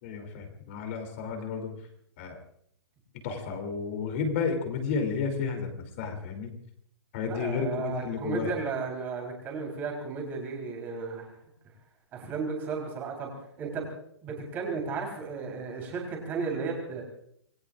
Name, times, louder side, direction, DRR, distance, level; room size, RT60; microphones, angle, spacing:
voice 1, 0.0-1.7 2.2-2.4 3.2-6.5 7.1-8.5, left 5 dB, 25° left, 4 dB, 3.0 m, -32 dB
voice 2, 7.3-11.3 12.1-13.3 13.6-13.8 14.2-17.0, right 5 dB, 15° right, 1 dB, 3.8 m, -34 dB
26.5 x 20.0 x 2.5 m, 0.68 s
hypercardioid pair, 180°, 15 cm